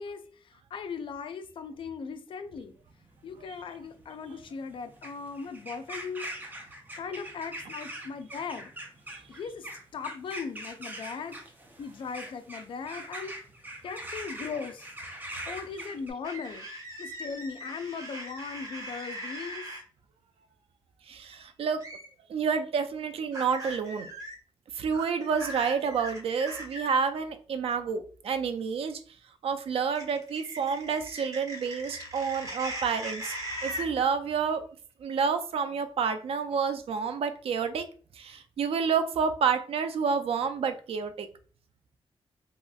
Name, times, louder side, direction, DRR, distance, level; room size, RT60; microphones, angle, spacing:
voice 1, 0.0-2.7 3.2-8.7 9.3-11.4 11.8-13.4 13.8-14.9 15.5-16.7 17.0-19.6, left 5 dB, 60° left, 0.4 m, -38 dB
sound 1, 2.7-16.1, right 1 dB, 20° right, 0.5 m, -42 dB
sound 2, 16.2-19.8 21.8-22.1 23.3-24.3 24.9-26.9 29.9-33.9, equal, 35° right, 1.0 m, -39 dB
voice 2, 21.1-21.8 22.3-24.1 24.7-29.0 29.4-33.3 33.6-34.6 35.0-37.8 38.1-41.3, right 6 dB, 75° right, 0.4 m, -29 dB
2.9 x 2.8 x 2.3 m
wide cardioid pair, 130°, 10 cm